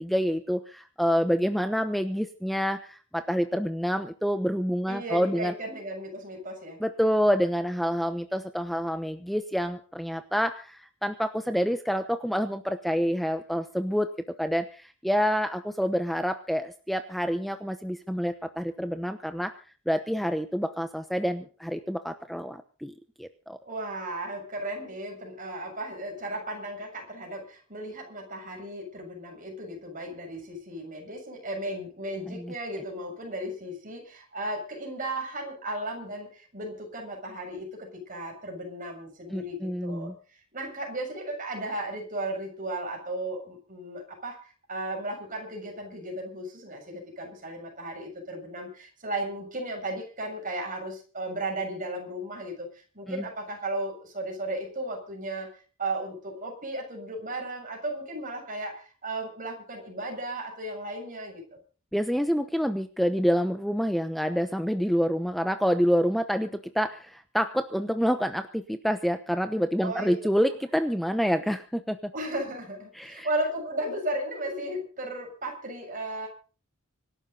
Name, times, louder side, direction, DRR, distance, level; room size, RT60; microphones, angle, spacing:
voice 1, 0.0-5.5 6.8-14.1 14.4-19.5 19.9-23.6 32.3-32.5 39.3-40.1 53.1-53.2 61.9-72.1 72.9-73.3, equal, ahead, 8 dB, 0.9 m, -27 dB
voice 2, 4.9-6.8 23.6-40.1 40.5-55.5 55.8-61.6 69.8-70.2 72.1-76.3, right 1 dB, 40° right, 2 dB, 7.2 m, -35 dB
26.0 x 12.0 x 4.0 m, 0.37 s
head